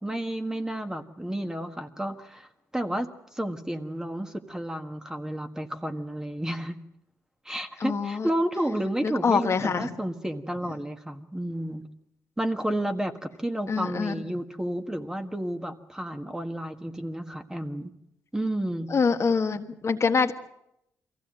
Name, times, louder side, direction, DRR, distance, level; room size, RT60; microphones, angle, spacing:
voice 1, 0.0-2.5 2.7-6.8 7.4-11.8 12.4-17.9 18.3-18.9, right 1 dB, 10° right, 6 dB, 1.7 m, -31 dB
voice 2, 7.8-8.3 9.0-9.9 13.7-14.2 18.9-20.3, left 5 dB, 45° left, 6 dB, 1.5 m, -25 dB
23.0 x 16.0 x 7.8 m, 0.82 s
cardioid pair, 75°, 7 cm